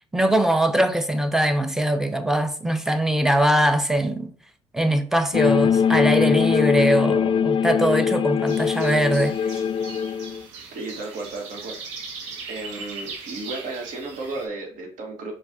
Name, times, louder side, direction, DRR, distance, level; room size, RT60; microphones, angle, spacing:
voice 1, 0.1-4.3 4.7-9.4, right 1 dB, 5° right, 0.6 m, -21 dB
sound 1, 5.3-10.4, left 7 dB, 35° left, 0.4 m, -22 dB
sound 2, 8.5-14.5, right 4 dB, 80° right, 0.8 m, -39 dB
voice 2, 10.7-11.8 12.5-15.3, right 3 dB, 60° right, 1.3 m, -33 dB
4.7 x 2.4 x 3.6 m
hypercardioid pair, 55°, 15 cm